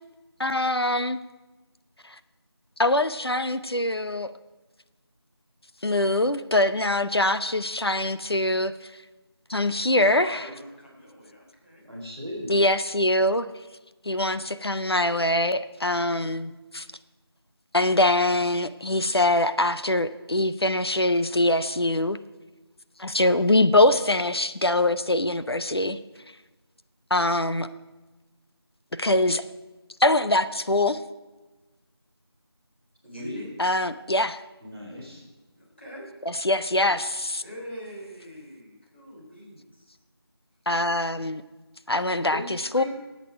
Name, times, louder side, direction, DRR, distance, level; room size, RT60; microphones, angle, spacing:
voice 1, 0.4-1.2 2.8-4.3 5.8-8.7 9.5-10.4 12.5-13.5 14.0-16.8 17.7-22.2 23.0-26.0 27.1-27.7 28.9-29.4 30.0-31.0 33.6-34.4 36.3-37.4 40.7-41.4 41.9-42.8, left 1 dB, 70° left, 12 dB, 0.7 m, -23 dB
voice 2, 10.2-11.8 33.0-33.5 35.6-36.2 37.4-40.0, equal, 25° left, -5 dB, 3.6 m, -43 dB
voice 3, 11.8-12.5 33.0-33.4 34.6-35.2 42.3-42.8, left 1 dB, 5° right, -12 dB, 1.5 m, -37 dB
19.5 x 8.4 x 4.6 m, 1.2 s
figure-of-eight pair, 175°, 14 cm